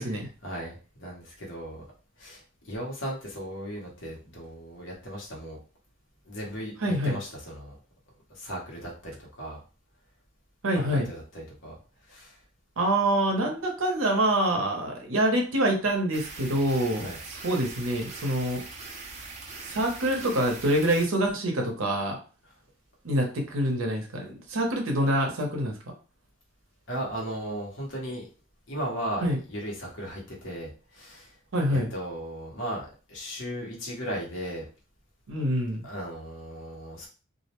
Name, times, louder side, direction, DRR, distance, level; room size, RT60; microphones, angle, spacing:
voice 1, 0.4-1.9 2.2-5.6 6.2-7.7 8.3-9.1 9.4-9.6 10.7-11.7 12.1-12.4 17.0-17.2 26.9-28.3 28.7-31.3 31.6-34.7 35.8-37.1, equal, 65° left, -2 dB, 1.0 m, -36 dB
voice 2, 6.8-7.2 10.6-11.1 12.8-18.6 19.6-22.2 23.0-25.8 29.2-29.4 31.5-31.9 35.3-35.8, right 1 dB, 90° right, 2 dB, 0.7 m, -26 dB
sound 1, 16.1-21.1, right 3 dB, 35° right, 0.5 m, -41 dB
2.4 x 2.1 x 2.9 m, 0.36 s
head